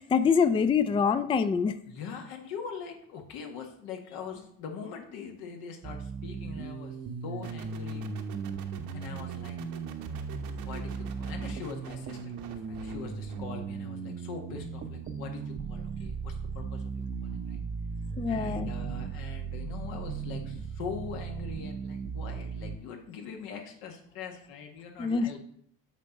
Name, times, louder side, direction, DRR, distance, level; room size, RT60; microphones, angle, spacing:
voice 1, 0.0-1.7 18.2-18.7 25.0-25.4, left 6 dB, 15° left, 12 dB, 0.3 m, -25 dB
voice 2, 1.9-6.9 7.2-8.1 8.9-9.6 10.6-17.6 18.3-25.4, left 5 dB, 80° left, 3 dB, 1.7 m, -42 dB
sound 1, 5.8-22.8, right 5 dB, 35° right, 0.7 m, -37 dB
sound 2, 7.4-13.8, right 7 dB, 80° right, 1.0 m, -48 dB
7.2 x 4.4 x 5.3 m, 0.64 s
cardioid pair, 105°, 36 cm